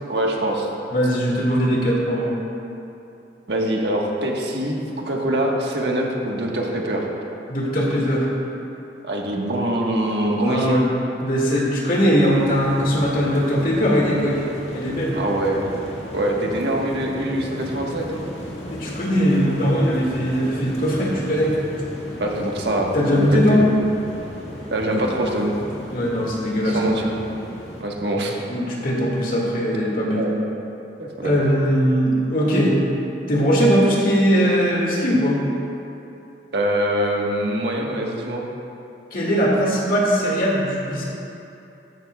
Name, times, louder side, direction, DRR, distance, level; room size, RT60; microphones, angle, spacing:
voice 1, 0.1-0.7 3.5-7.1 9.0-10.8 15.1-15.7 16.1-18.2 22.2-23.6 24.7-25.6 26.6-27.1 27.8-28.3 30.1-30.3 31.0-31.4 36.5-38.4, right 1 dB, 75° right, -1 dB, 1.4 m, -24 dB
voice 2, 0.9-2.3 7.5-8.3 10.3-10.9 11.2-14.4 14.7-15.2 18.7-21.6 22.9-23.6 25.9-27.0 28.5-30.3 31.2-32.8 33.3-35.4 39.1-41.0, equal, 50° left, -4 dB, 2.1 m, -20 dB
sound 1, 12.2-27.8, equal, 85° left, 1.8 m, -35 dB
14.0 x 12.0 x 2.3 m, 2.8 s
head